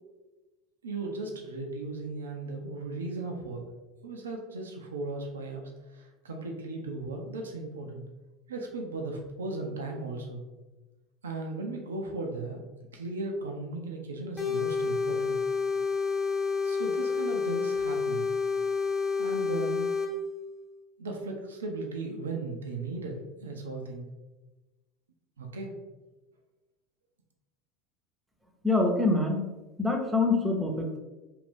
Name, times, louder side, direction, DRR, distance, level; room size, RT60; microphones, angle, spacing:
voice 1, 0.8-3.6 4.0-8.0 8.5-10.4 11.2-12.6 12.9-15.4 16.6-18.3 19.2-20.1 21.0-24.1 25.4-25.7, right 2 dB, 80° right, 2 dB, 0.4 m, -37 dB
sound 1, 14.4-20.1, left 5 dB, 15° left, 1.0 m, -29 dB
voice 2, 28.6-29.4 29.8-31.0, left 2 dB, 10° right, 1 dB, 0.7 m, -25 dB
2.6 x 2.4 x 3.4 m, 1.1 s
hypercardioid pair, 75°, 0 cm